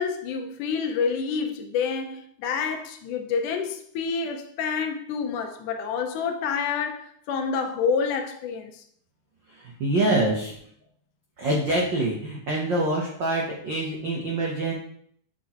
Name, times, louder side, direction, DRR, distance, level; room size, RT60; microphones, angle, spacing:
voice 1, 0.0-8.8, left 6 dB, 80° left, 2.1 m, -28 dB
voice 2, 9.5-10.5 11.4-14.7, right 1 dB, 85° right, 1.0 m, -25 dB
8.3 x 3.8 x 4.3 m
omnidirectional pair, 3.7 m